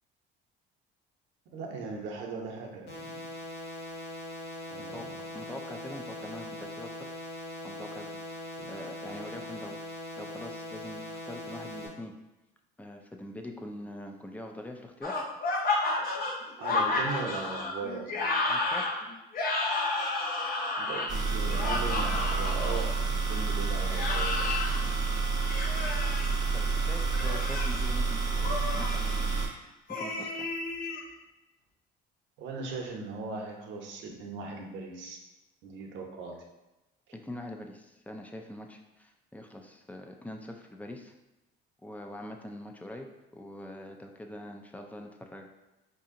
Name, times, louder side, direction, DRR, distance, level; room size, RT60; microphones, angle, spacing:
voice 1, 1.5-3.2 4.7-5.2 8.6-8.7 16.6-18.3 20.8-24.5 32.4-35.2 35.6-36.4, right 4 dB, 70° right, 1 dB, 0.8 m, -38 dB
sound 1, 2.9-11.9, left 1 dB, 85° left, 1.0 m, -41 dB
voice 2, 5.3-7.1 7.6-9.9 10.2-12.1 12.8-15.2 18.5-18.9 26.5-30.5 37.1-41.1 41.8-43.1 43.3-45.6, left 1 dB, 5° left, 3 dB, 0.4 m, -43 dB
sound 2, 15.0-22.8 23.9-24.8 25.5-26.3 27.1-27.8 28.4-29.0 29.9-31.0, left 3 dB, 45° left, 0.7 m, -31 dB
sound 3, 21.1-29.5, right 4 dB, 20° right, 0.7 m, -29 dB
4.7 x 2.7 x 2.6 m, 1.0 s
cardioid pair, 95°, 20 cm